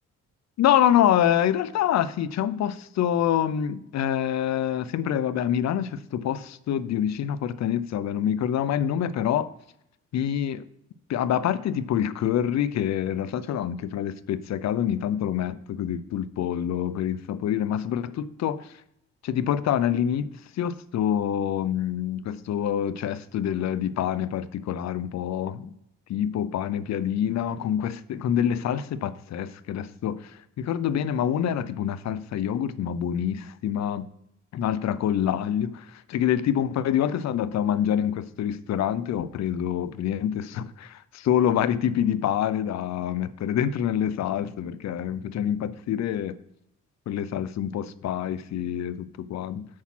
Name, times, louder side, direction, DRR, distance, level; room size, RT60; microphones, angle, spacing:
voice 1, 0.6-9.5 10.1-10.6 11.1-18.7 19.2-20.3 20.6-25.7 26.1-34.1 34.5-46.4 47.1-49.7, left 10 dB, 60° left, 0.6 m, -26 dB
7.2 x 6.3 x 5.8 m
cardioid pair, 90°, 30 cm